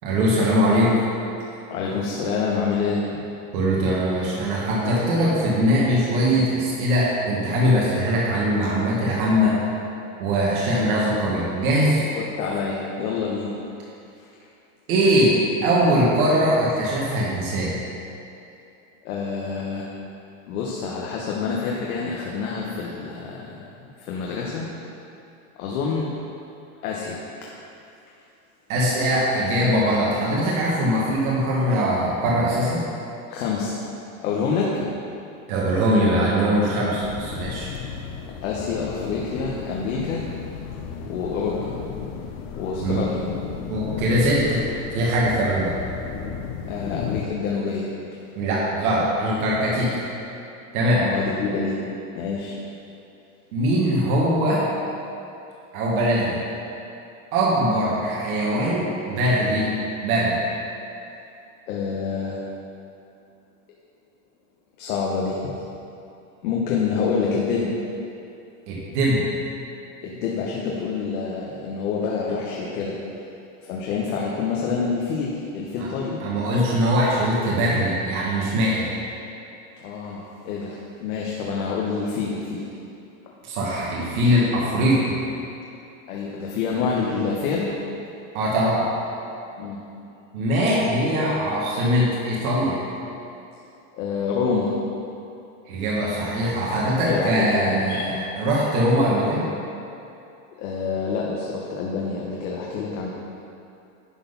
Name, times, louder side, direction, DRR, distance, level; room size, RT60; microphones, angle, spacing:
voice 1, 0.0-1.0 3.5-9.6 10.2-12.0 14.9-15.3 15.6-17.8 28.7-32.8 35.5-37.7 42.8-43.0 43.7-44.6 44.9-45.7 48.4-50.0 50.7-51.0 53.5-54.6 55.7-56.4 57.3-59.7 60.0-60.4 68.7-69.2 75.8-75.9 76.2-78.9 83.4-85.2 88.3-88.8 90.3-92.8 95.7-99.5, equal, 80° right, -5 dB, 1.9 m, -21 dB
voice 2, 1.7-3.2 12.1-13.6 14.2-14.3 19.0-19.9 20.5-23.7 24.0-24.7 25.6-26.1 26.8-27.2 33.3-33.8 34.2-34.9 38.4-40.2 41.0-41.7 42.6-43.2 46.7-48.1 50.9-51.8 52.1-52.6 61.7-62.4 64.8-65.6 66.4-67.7 70.0-73.0 73.6-76.2 79.8-82.7 83.3-83.4 86.1-87.7 89.6-89.8 93.9-94.7 97.0-98.0 100.6-103.1, left 5 dB, 80° left, -3 dB, 1.3 m, -27 dB
sound 1, 37.0-47.3, left 7 dB, 40° left, 0.8 m, -34 dB
11.0 x 4.2 x 5.6 m, 2.7 s
supercardioid pair, 145°, 42 cm